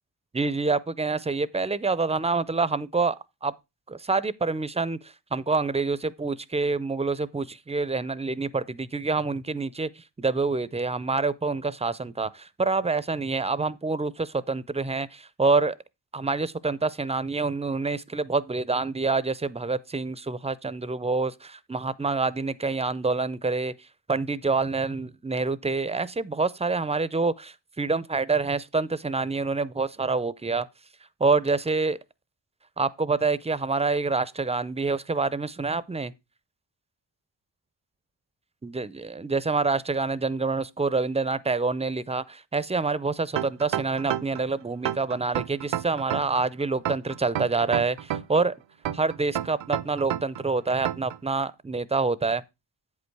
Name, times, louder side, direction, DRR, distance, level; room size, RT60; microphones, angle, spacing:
voice 1, 0.3-3.2 3.4-3.5 3.9-5.0 5.3-9.9 10.2-15.7 16.1-23.7 24.1-30.7 31.2-32.0 32.8-36.1 38.6-48.5 48.9-52.4, right 3 dB, 15° right, 0.4 m, -27 dB
sound 1, 43.4-44.4 44.9-46.4 46.9-48.4 48.9-50.4 50.9-51.2, right 11 dB, 80° right, 0.6 m, -29 dB
8.3 x 5.3 x 4.6 m
cardioid pair, 75°, 44 cm